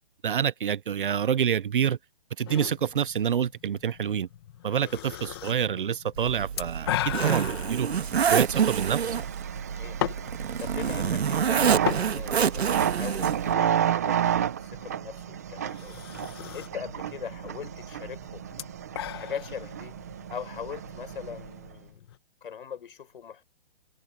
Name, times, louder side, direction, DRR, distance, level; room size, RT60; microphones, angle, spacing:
voice 1, 0.2-2.0 2.4-4.3 4.6-7.0 7.2-7.9 8.3-9.2, right 8 dB, 55° right, 0.7 m, -27 dB
sound 1, 2.5-22.2, left 14 dB, 25° left, 1.5 m, -39 dB
voice 2, 4.8-5.2 9.7-10.0 10.6-16.0 16.5-18.5 19.2-20.0 20.3-22.1 22.4-23.5, left 7 dB, 55° left, 5.8 m, -41 dB
Zipper (clothing), 6.2-13.5, right 7 dB, 80° right, 2.0 m, -27 dB
sound 2, 7.9-21.7, right 9 dB, 15° right, 0.6 m, -32 dB
hypercardioid pair, 175°, 31 cm